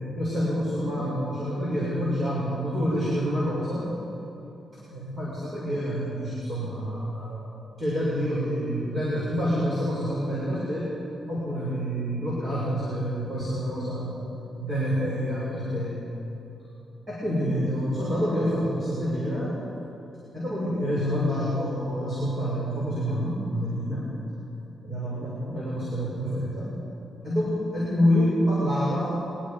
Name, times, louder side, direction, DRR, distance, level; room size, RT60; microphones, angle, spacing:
voice 1, 0.1-3.8 4.9-7.5 7.8-10.9 11.3-14.2 14.6-16.0 17.1-19.5 20.3-24.1 24.8-26.7 27.2-29.2, equal, 30° right, -8 dB, 6.9 m, -27 dB
25.0 x 21.0 x 5.3 m, 3.0 s
wide cardioid pair, 145°, 0 cm